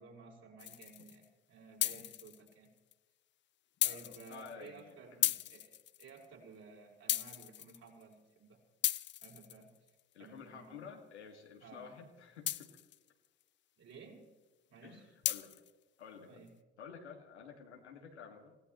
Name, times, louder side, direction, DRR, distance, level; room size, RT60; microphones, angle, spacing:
voice 1, 0.0-2.7 3.8-5.2 5.5-8.6 9.2-9.7 10.2-10.9 11.6-11.9 13.8-14.3 14.7-15.0 16.2-16.5, right 4 dB, 50° right, -1 dB, 4.9 m, -55 dB
sound 1, 0.6-1.3 1.8-2.5 2.9-3.0 3.8-4.8 5.2-6.3 7.1-8.0 8.8-10.0 12.5-13.1 15.2-15.7, left 12 dB, 35° left, 0.5 m, -36 dB
voice 2, 3.9-5.4 10.1-12.7 14.8-15.5 16.0-16.4 16.8-18.6, left 6 dB, 85° left, 2 dB, 2.0 m, -52 dB
26.0 x 16.5 x 3.1 m, 1.3 s
hypercardioid pair, 60°, 33 cm